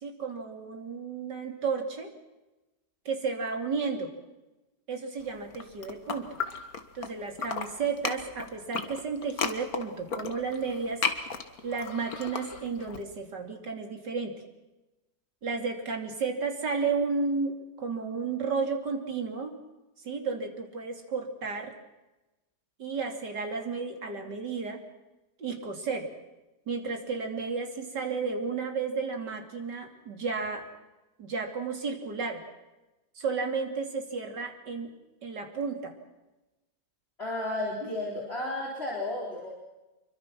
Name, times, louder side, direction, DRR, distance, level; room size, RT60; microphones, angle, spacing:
voice 1, 0.0-2.1 3.1-4.1 4.9-6.4 7.0-11.0 11.6-14.4 15.4-19.6 20.0-21.7 22.8-24.8 25.4-26.1 26.7-30.6 31.2-32.4 33.2-34.9 35.2-35.9 37.8-37.9, right 5 dB, 80° right, 4 dB, 3.5 m, -32 dB
sound 1, 5.4-7.1 7.4-13.0, left 5 dB, 60° left, 2.0 m, -34 dB
voice 2, 37.2-39.5, left 1 dB, 35° left, -2 dB, 4.5 m, -33 dB
26.5 x 23.5 x 6.1 m, 1.0 s
omnidirectional pair, 1.8 m